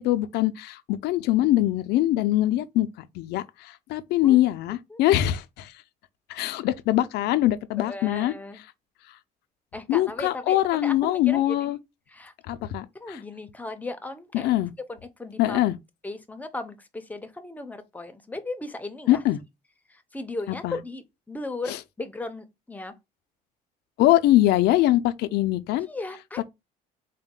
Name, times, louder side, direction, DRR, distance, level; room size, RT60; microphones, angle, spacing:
voice 1, 0.0-2.9 3.1-5.7 6.3-8.3 9.9-11.8 12.5-13.2 14.3-14.7 15.4-15.8 19.1-19.4 20.6-20.8 21.7-21.8 24.0-25.9, left 14 dB, 80° left, 0.4 m, -23 dB
voice 2, 7.8-8.6 9.7-11.7 12.1-12.3 12.9-14.5 14.9-15.6 16.0-19.2 19.9-22.9 25.9-26.4, left 2 dB, 10° left, 0.6 m, -36 dB
4.0 x 2.1 x 3.6 m
cardioid pair, 110°, 17 cm